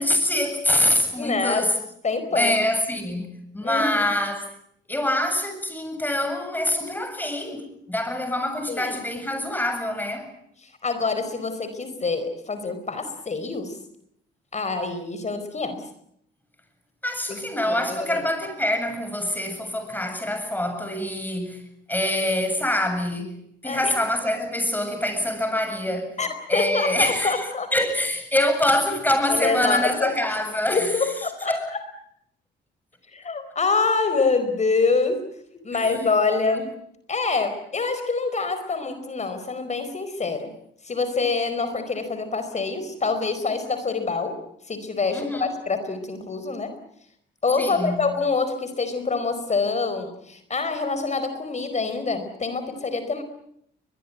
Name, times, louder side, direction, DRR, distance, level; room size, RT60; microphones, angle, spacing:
voice 1, 0.0-1.7 2.3-4.5 4.9-10.3 17.0-21.6 21.9-23.4 23.6-26.2 26.5-30.9 31.5-31.6 35.7-35.9 36.5-36.6 45.1-45.5 47.6-48.0, left 1 dB, 10° left, 7.9 m, -25 dB
voice 2, 1.2-1.7 2.0-2.6 3.6-4.0 8.7-9.0 10.6-13.8 14.5-15.8 17.3-17.4 17.6-18.2 23.6-23.9 26.2-27.7 29.3-30.1 30.7-31.8 33.1-35.2 35.6-36.7 37.1-40.5 40.8-44.4 44.7-46.7 47.4-53.2, left 4 dB, 35° left, 4.6 m, -26 dB
23.0 x 22.0 x 9.4 m
cardioid pair, 90°, 20 cm